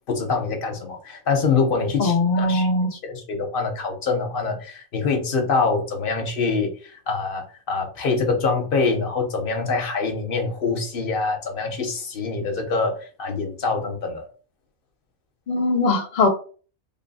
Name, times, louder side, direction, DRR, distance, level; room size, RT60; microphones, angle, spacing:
voice 1, 0.1-12.9 13.2-14.3, left 4 dB, 45° left, 3 dB, 0.9 m, -25 dB
voice 2, 2.0-2.9 15.5-16.3, left 2 dB, 65° left, 4 dB, 0.4 m, -20 dB
3.7 x 2.2 x 4.0 m, 0.40 s
omnidirectional pair, 1.4 m